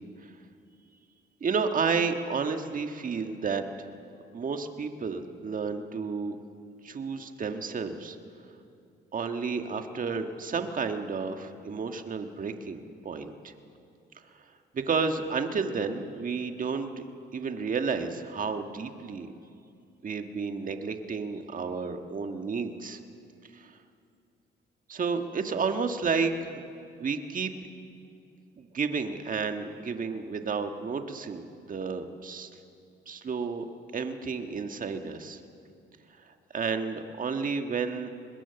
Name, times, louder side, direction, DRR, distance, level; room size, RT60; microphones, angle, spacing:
voice 1, 1.4-3.9 4.3-6.4 6.8-8.2 9.1-13.5 14.3-14.4 14.7-16.9 17.3-19.3 20.0-23.0 23.5-23.8 24.9-26.6 27.0-27.5 28.6-32.6 33.1-33.7 33.9-35.4 36.2-38.1, right 5 dB, 45° right, 6 dB, 1.6 m, -31 dB
24.0 x 21.0 x 7.0 m, 2.5 s
cardioid pair, 90°, 20 cm